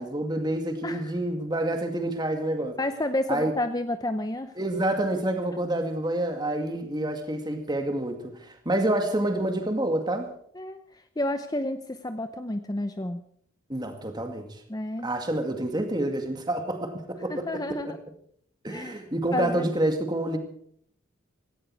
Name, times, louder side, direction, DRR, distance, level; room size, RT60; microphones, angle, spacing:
voice 1, 0.0-2.8 3.3-3.5 4.6-10.3 13.7-14.6 15.0-17.9 18.6-20.4, right 1 dB, 20° right, 2.1 m, -28 dB
voice 2, 2.8-4.5 10.6-10.8 11.2-13.2 14.7-15.1 17.3-18.0 18.7-19.0 19.3-19.7, left 1 dB, 20° left, 0.7 m, -30 dB
17.5 x 16.5 x 4.7 m
head